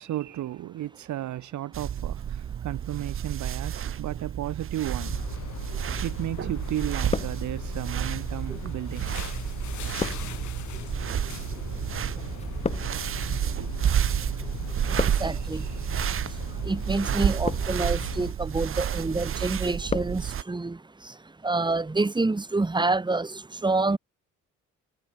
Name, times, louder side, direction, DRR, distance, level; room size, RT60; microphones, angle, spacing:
voice 1, 0.0-5.5 6.0-9.1 15.0-15.9, right 13 dB, 70° right, 1.3 m, -34 dB
sound 1, 1.7-20.4, right 9 dB, 45° right, 0.9 m, -30 dB
sound 2, 5.0-18.3, left 12 dB, 75° left, 5.8 m, -40 dB
sound 3, 6.2-6.6 6.8-7.9 8.6-14.2 14.5-15.5 16.2-16.5 17.2-18.0 18.4-18.9 19.2-20.2 20.5-20.6, left 4 dB, 20° left, 0.8 m, -35 dB
voice 2, 15.2-15.6 16.7-20.8 21.4-23.3 23.6-24.0, right 3 dB, 15° right, 1.8 m, -27 dB
cardioid pair, 90°, 30 cm